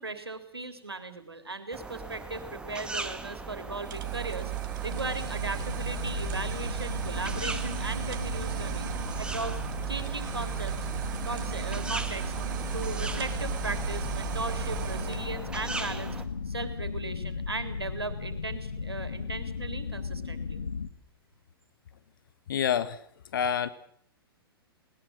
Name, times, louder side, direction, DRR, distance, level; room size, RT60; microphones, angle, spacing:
voice 1, 0.0-4.5 4.8-10.9 11.2-12.3 12.7-16.2 16.5-20.6, right 3 dB, 85° right, 9 dB, 3.5 m, -37 dB
sound 1, 1.7-16.2, right 3 dB, 5° right, 1.7 m, -40 dB
sound 2, 3.8-15.4, right 16 dB, 50° right, 2.1 m, -35 dB
sound 3, 4.9-20.9, left 5 dB, 75° left, 2.0 m, -36 dB
voice 2, 22.5-23.0 23.3-23.7, left 8 dB, 60° left, 13 dB, 1.5 m, -27 dB
20.0 x 20.0 x 8.8 m, 0.62 s
figure-of-eight pair, 110°, 13 cm